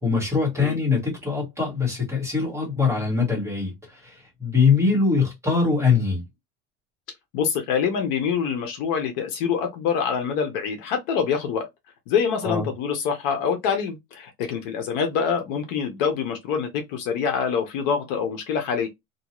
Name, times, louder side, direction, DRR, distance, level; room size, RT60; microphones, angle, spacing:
voice 1, 0.0-6.2 12.4-12.7, left 5 dB, 10° right, 1.3 m, -23 dB
voice 2, 7.3-11.6 12.1-18.9, left 7 dB, 50° left, 0.7 m, -25 dB
2.7 x 2.3 x 2.9 m
cardioid pair, 175°, 29 cm